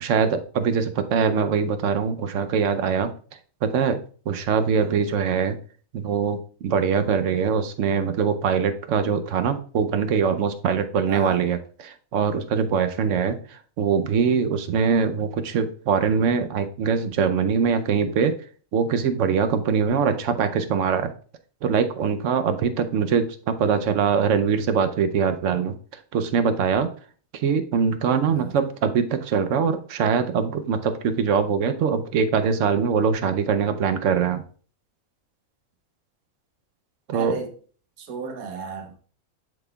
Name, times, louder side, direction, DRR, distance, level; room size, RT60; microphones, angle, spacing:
voice 1, 0.0-3.1 3.6-4.0 4.3-5.5 5.9-13.4 13.8-18.3 18.7-21.1 21.6-25.7 26.1-26.9 27.4-34.4 37.1-37.4, right 6 dB, 65° right, 0.9 m, -23 dB
voice 2, 4.8-5.1 11.1-11.4 28.2-28.5 37.1-37.5 38.0-39.0, right 5 dB, 90° right, 1.3 m, -34 dB
10.5 x 4.1 x 2.3 m
omnidirectional pair, 1.5 m